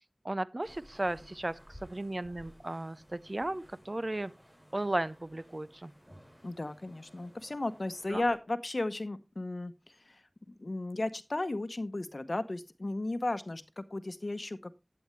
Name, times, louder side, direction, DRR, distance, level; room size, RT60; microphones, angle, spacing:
voice 1, 0.2-4.3 4.7-5.9 8.1-8.2, right 1 dB, 50° right, 0.5 m, -35 dB
sound 1, 0.6-8.4, equal, 10° right, 6.9 m, -57 dB
voice 2, 6.4-14.7, left 2 dB, 70° left, 0.8 m, -35 dB
11.5 x 8.6 x 3.1 m
wide cardioid pair, 40°, 0 cm